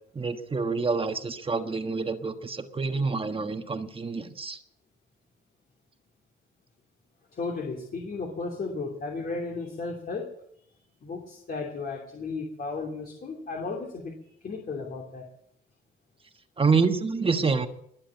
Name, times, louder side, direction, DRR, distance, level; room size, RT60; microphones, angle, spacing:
voice 1, 0.1-4.6 16.6-17.7, right 4 dB, 25° right, 8 dB, 1.4 m, -27 dB
voice 2, 7.3-10.3 11.0-15.3, left 3 dB, 45° left, 1 dB, 2.9 m, -34 dB
21.5 x 7.6 x 7.2 m, 0.70 s
cardioid pair, 90°, 20 cm